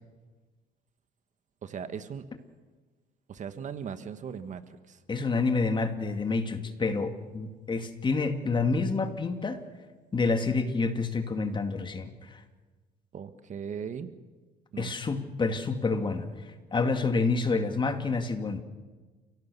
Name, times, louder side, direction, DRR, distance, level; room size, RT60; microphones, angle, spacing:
voice 1, 1.6-2.3 3.3-5.0 13.1-14.1 14.7-14.9, right 7 dB, 45° right, 10 dB, 1.5 m, -38 dB
voice 2, 5.1-9.6 10.1-12.4 14.8-16.3 16.7-18.6, left 4 dB, 30° left, 7 dB, 2.2 m, -28 dB
30.0 x 17.0 x 7.0 m, 1.3 s
cardioid pair, 110°, 17 cm